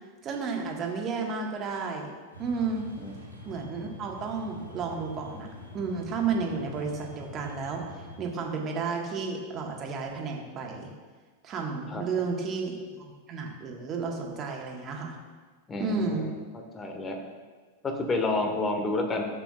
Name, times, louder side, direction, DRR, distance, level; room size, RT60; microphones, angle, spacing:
voice 1, 0.2-2.1 2.4-2.9 3.4-5.5 5.7-7.8 8.2-10.9 11.4-12.7 13.0-15.2 15.8-16.3, right 4 dB, 30° right, 0 dB, 1.6 m, -32 dB
sound 1, 2.3-8.2, left 2 dB, 90° left, 1.8 m, -45 dB
voice 2, 15.7-16.4 16.7-17.2 17.8-19.3, left 2 dB, 20° left, 3 dB, 1.4 m, -29 dB
13.0 x 7.9 x 2.4 m, 1.4 s
figure-of-eight pair, 90°, 0 cm